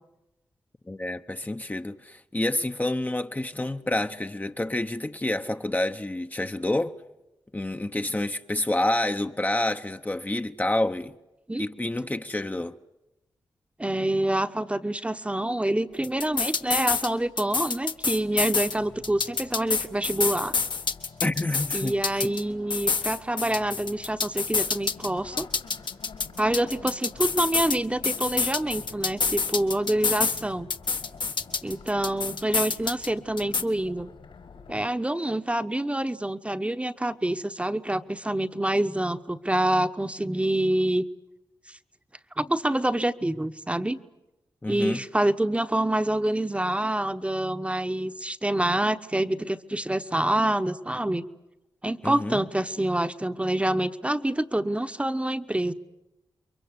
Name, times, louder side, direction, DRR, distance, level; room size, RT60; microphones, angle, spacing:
voice 1, 0.9-7.0 7.5-11.2 11.6-12.7 21.2-21.9 22.2-22.3 44.6-45.0 52.0-52.4, left 1 dB, 20° left, 0.9 m, -28 dB
voice 2, 13.8-20.5 21.7-25.5 26.4-30.7 31.6-34.1 34.7-41.0 41.7-41.8 42.4-44.0 44.6-51.2 51.8-55.7, right 1 dB, 15° right, 1.1 m, -26 dB
sound 1, 15.9-34.9, left 4 dB, 80° left, 6.1 m, -49 dB
sound 2, 16.0-17.1 17.4-18.7 19.0-22.4 22.7-25.1 25.4-27.8 28.0-30.4 30.7-33.1 33.4-33.6, left 5 dB, 65° left, 1.4 m, -27 dB
29.0 x 23.0 x 8.2 m
cardioid pair, 60°, 9 cm